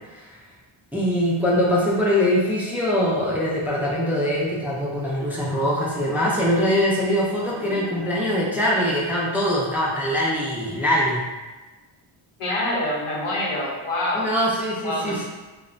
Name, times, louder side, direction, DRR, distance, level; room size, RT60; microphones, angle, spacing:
voice 1, 0.9-11.2 14.1-15.3, equal, 5° right, -5 dB, 0.4 m, -22 dB
voice 2, 7.6-8.0 12.4-14.3 14.8-15.3, left 1 dB, 85° left, -3 dB, 0.8 m, -26 dB
2.9 x 2.1 x 2.5 m, 1.2 s
wide cardioid pair, 115°, 50 cm